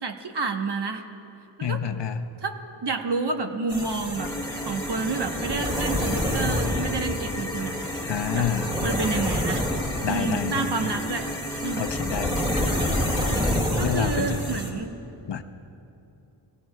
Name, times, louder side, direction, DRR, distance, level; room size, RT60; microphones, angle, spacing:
voice 1, 0.0-1.0 1.6-1.8 2.4-4.3 4.7-7.8 8.3-8.5 8.8-9.6 10.0-11.3 11.6-11.9 13.7-15.0, right 4 dB, 55° right, 4 dB, 1.1 m, -29 dB
voice 2, 1.6-2.3 8.0-8.7 10.0-11.0 11.8-12.5 13.8-14.6 15.3-15.4, left 7 dB, 60° left, 7 dB, 0.7 m, -28 dB
sound 1, 3.7-14.7, left 1 dB, 10° right, 1.8 m, -28 dB
sound 2, 4.2-13.6, left 1 dB, 5° left, 0.3 m, -35 dB
25.0 x 17.0 x 2.3 m, 2.8 s
wide cardioid pair, 130°, 49 cm